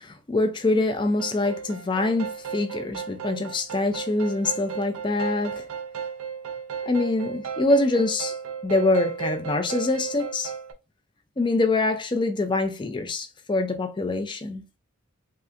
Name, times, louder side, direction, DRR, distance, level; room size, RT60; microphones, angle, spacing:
voice 1, 0.0-5.7 6.8-8.4 8.6-10.5 11.4-14.6, left 2 dB, 20° left, 0.4 m, -25 dB
sound 1, 1.2-10.7, right 7 dB, 85° right, 0.6 m, -34 dB
3.2 x 2.8 x 2.4 m
head